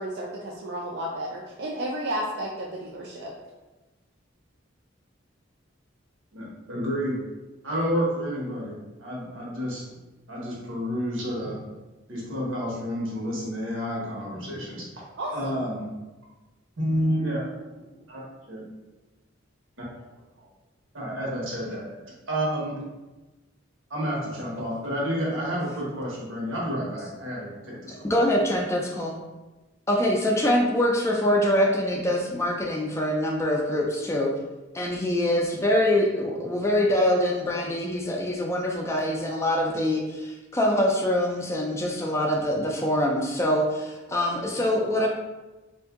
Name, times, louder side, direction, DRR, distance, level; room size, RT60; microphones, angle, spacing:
voice 1, 0.0-3.3 15.2-15.6, right 1 dB, 55° right, -3 dB, 0.4 m, -32 dB
voice 2, 6.3-7.2 7.6-10.0 10.3-11.6 12.1-14.9 15.3-15.9 16.8-18.2 18.5-18.6 20.4-20.5 20.9-21.9 22.3-22.8 23.9-27.9, equal, 90° right, -4 dB, 1.2 m, -30 dB
voice 3, 27.9-29.1 29.9-34.3 34.7-45.1, left 1 dB, 15° left, 0 dB, 0.3 m, -24 dB
2.7 x 2.5 x 3.6 m, 1.1 s
head